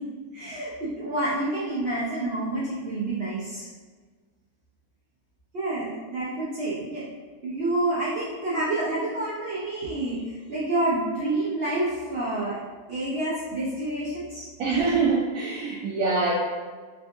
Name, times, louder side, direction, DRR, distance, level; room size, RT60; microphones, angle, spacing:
voice 1, 0.3-3.7 5.5-7.0 7.4-12.6 12.9-14.4, right 2 dB, 90° right, -9 dB, 0.5 m, -28 dB
voice 2, 14.6-16.3, right 4 dB, 70° right, -6 dB, 1.0 m, -24 dB
3.4 x 2.5 x 2.5 m, 1.5 s
omnidirectional pair, 1.8 m